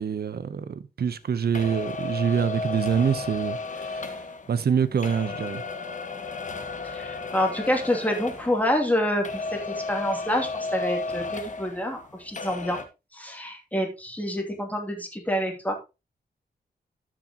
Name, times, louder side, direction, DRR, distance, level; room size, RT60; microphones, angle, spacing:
voice 1, 0.0-4.1 4.5-5.6, right 7 dB, 70° right, 0.9 m, -26 dB
sound 1, 1.5-9.0 9.2-12.1 12.3-12.8, left 3 dB, 45° left, 1.4 m, -34 dB
voice 2, 6.8-9.3 9.5-12.8 13.1-15.7, equal, 10° left, 2.7 m, -27 dB
13.0 x 6.3 x 3.0 m
cardioid pair, 85°, 17 cm